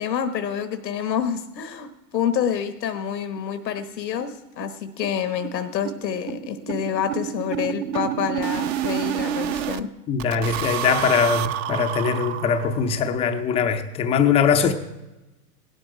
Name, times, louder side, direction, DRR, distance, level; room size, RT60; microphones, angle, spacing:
voice 1, 0.0-9.9, left 8 dB, 85° left, 1.1 m, -27 dB
sound 1, 3.0-3.1 3.4-3.5 3.8-3.9 4.2-4.3 4.6-9.8 10.2-13.0, right 10 dB, 40° right, 0.7 m, -29 dB
voice 2, 10.1-14.7, left 6 dB, 15° left, 0.4 m, -21 dB
17.0 x 11.5 x 4.6 m
hypercardioid pair, 120°, 49 cm